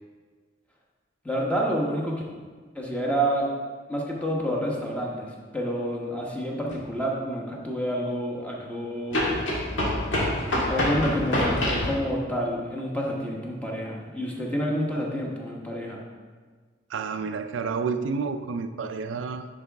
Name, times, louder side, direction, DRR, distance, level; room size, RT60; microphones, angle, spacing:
voice 1, 1.2-2.2 2.7-3.5 3.9-9.2 10.7-16.0, equal, 5° left, -2 dB, 1.1 m, -28 dB
sound 1, 6.7-6.8 9.1-11.9, left 1 dB, 80° left, 1.8 m, -26 dB
voice 2, 16.9-19.5, right 5 dB, 75° right, 8 dB, 0.4 m, -30 dB
9.9 x 4.8 x 3.5 m, 1.5 s
head